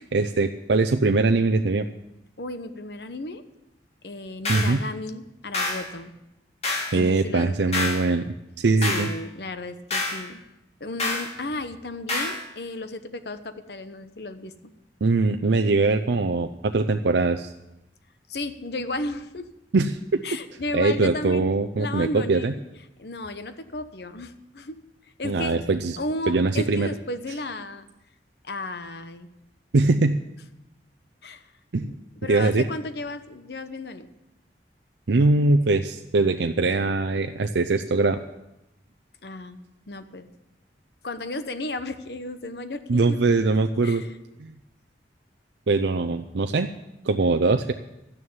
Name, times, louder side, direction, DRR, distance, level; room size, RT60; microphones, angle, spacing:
voice 1, 0.0-1.9 4.5-4.8 6.9-8.2 8.6-9.1 15.0-17.5 19.7-20.2 20.7-22.5 25.2-26.0 26.3-26.9 29.7-30.2 31.7-31.9 32.3-32.7 35.1-38.2 42.9-44.0 44.4-44.5 45.7-46.7 47.0-47.7, right 3 dB, 85° right, 6 dB, 0.6 m, -22 dB
voice 2, 2.4-3.4 4.0-6.1 6.9-7.5 7.9-8.1 8.9-10.4 10.8-14.7 18.3-19.5 20.2-21.5 21.8-22.6 23.0-24.8 25.2-25.6 26.0-27.9 28.4-29.3 31.2-31.4 31.8-31.9 32.2-34.1 39.2-40.3 41.0-43.3 43.8-44.2, left 2 dB, 65° left, 10 dB, 0.9 m, -34 dB
sound 1, 4.4-4.8 5.5-5.9 6.6-7.0 7.7-8.0 8.8-9.1 9.9-10.2 11.0-11.3 12.1-12.4, left 3 dB, 35° left, 2.0 m, -27 dB
12.5 x 9.6 x 7.3 m, 0.91 s
head